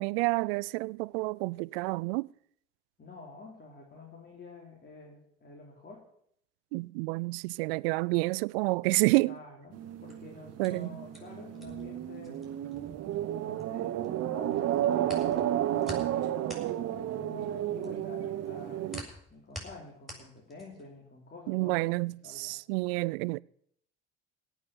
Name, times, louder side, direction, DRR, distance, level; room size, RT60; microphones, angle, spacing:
voice 1, 0.0-2.3 6.7-9.4 10.6-11.0 21.5-23.4, right 25 dB, 70° right, 0.5 m, -29 dB
voice 2, 3.0-6.0 9.2-12.5 13.4-15.4 15.7-16.5 17.0-18.8 19.3-22.6, left 3 dB, 30° left, 3.9 m, -48 dB
sound 1, 9.7-19.0, right 12 dB, 50° right, 1.1 m, -32 dB
sound 2, 10.1-14.1 14.4-21.0, equal, ahead, 7.2 m, -47 dB
18.0 x 6.4 x 8.8 m
hypercardioid pair, 60°, 31 cm